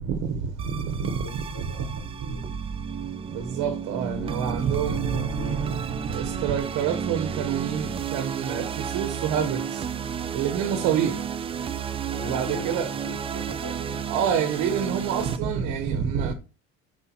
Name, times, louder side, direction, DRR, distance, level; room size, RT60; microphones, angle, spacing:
voice 1, 0.0-1.4 3.3-5.1 6.1-9.8 10.3-11.2 12.2-12.9 14.1-16.3, right 8 dB, 70° right, 1.2 m, -27 dB
sound 1, 0.6-15.4, right 7 dB, 20° right, 0.3 m, -32 dB
voice 2, 0.9-2.5 4.1-5.8 12.1-13.8 15.4-15.8, left 2 dB, 40° left, 4.3 m, -42 dB
9.4 x 5.3 x 2.9 m
cardioid pair, 170°, 31 cm